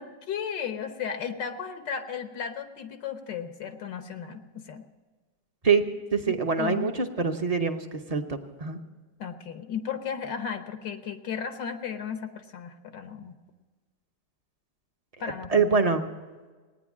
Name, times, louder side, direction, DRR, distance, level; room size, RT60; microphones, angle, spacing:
voice 1, 0.0-4.8 6.6-6.9 9.2-13.4 15.2-15.7, left 7 dB, 85° left, 8 dB, 1.8 m, -35 dB
voice 2, 6.1-8.8 15.2-16.1, right 5 dB, 35° right, 5 dB, 0.6 m, -25 dB
18.0 x 9.6 x 7.3 m, 1.4 s
omnidirectional pair, 1.8 m